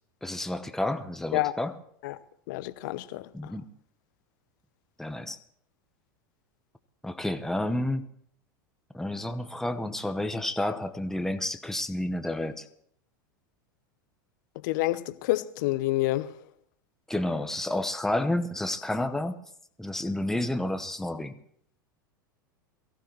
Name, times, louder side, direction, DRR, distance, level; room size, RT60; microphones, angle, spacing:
voice 1, 0.2-1.8 3.3-3.6 5.0-5.4 7.0-8.0 8.9-12.6 17.1-19.4 19.8-21.3, left 1 dB, 5° left, 1.0 m, -30 dB
voice 2, 2.5-3.2 14.6-16.3, left 17 dB, 60° left, 0.9 m, -28 dB
23.0 x 15.0 x 3.2 m
hypercardioid pair, 90°, 11 cm